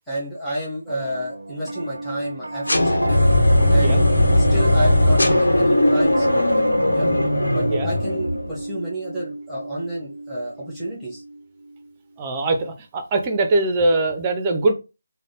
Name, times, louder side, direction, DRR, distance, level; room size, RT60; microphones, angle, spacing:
voice 1, 0.1-3.2 3.7-7.1 7.5-11.2, equal, ahead, -7 dB, 1.1 m, -30 dB
Piano, 0.9-12.4, right 2 dB, 80° right, 0.5 m, -33 dB
sound 1, 2.7-8.6, left 1 dB, 80° left, 1.1 m, -18 dB
voice 2, 12.2-14.7, right 2 dB, 20° right, 5 dB, 0.6 m, -21 dB
3.3 x 2.2 x 3.8 m, 0.28 s
figure-of-eight pair, 160°, 0 cm